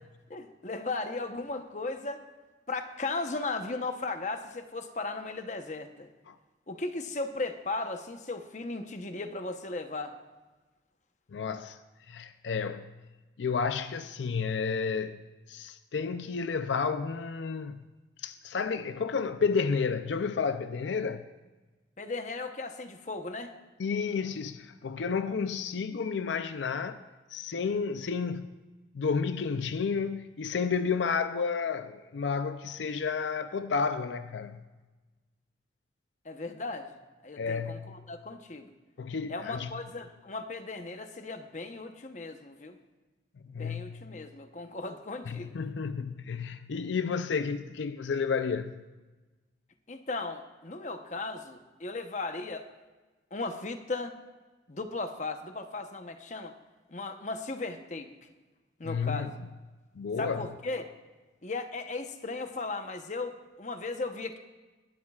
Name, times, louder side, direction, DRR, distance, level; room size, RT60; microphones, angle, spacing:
voice 1, 0.3-2.3 2.7-6.1 6.7-10.1 22.0-23.5 36.2-36.9 37.2-38.7 39.3-42.8 43.6-45.5 49.9-52.7 53.3-54.1 54.7-56.5 56.9-58.1 58.8-59.4 60.2-60.9 61.4-64.4, left 3 dB, 40° left, 0.9 m, -36 dB
voice 2, 11.3-11.8 12.1-12.9 13.4-15.2 15.5-17.8 18.2-21.2 23.8-27.0 27.3-28.5 28.9-34.6 37.4-37.9 39.0-39.7 43.5-44.0 45.3-48.8 58.8-59.3 60.0-60.5, left 5 dB, 85° left, 0.5 m, -31 dB
20.5 x 11.5 x 2.4 m
head